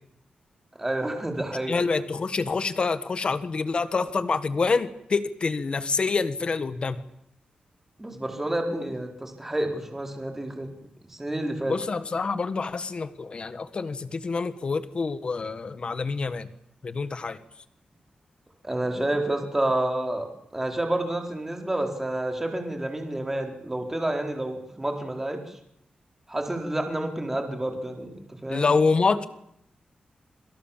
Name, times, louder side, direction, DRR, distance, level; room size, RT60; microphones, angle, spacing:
voice 1, 0.8-1.8 8.0-10.7 11.2-11.8 18.6-20.3 20.5-25.4 26.3-28.1 28.4-28.7, right 1 dB, 10° right, 3 dB, 4.2 m, -29 dB
voice 2, 1.7-7.0 11.7-16.5 16.8-17.4 28.5-29.2, left 4 dB, 40° left, 12 dB, 1.6 m, -26 dB
27.0 x 26.5 x 7.4 m, 0.74 s
wide cardioid pair, 180°, 3 cm